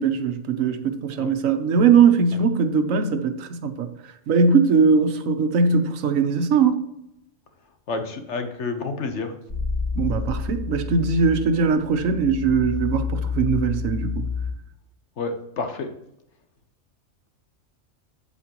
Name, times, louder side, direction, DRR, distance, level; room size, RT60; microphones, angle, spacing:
voice 1, 0.0-3.9 4.3-6.8 10.0-14.3, right 5 dB, 85° right, 1.2 m, -20 dB
voice 2, 7.9-9.3 15.2-15.9, left 3 dB, 65° left, 1.2 m, -29 dB
sound 1, 9.5-14.5, left 5 dB, 30° left, 1.3 m, -29 dB
8.3 x 8.2 x 2.9 m
omnidirectional pair, 1.3 m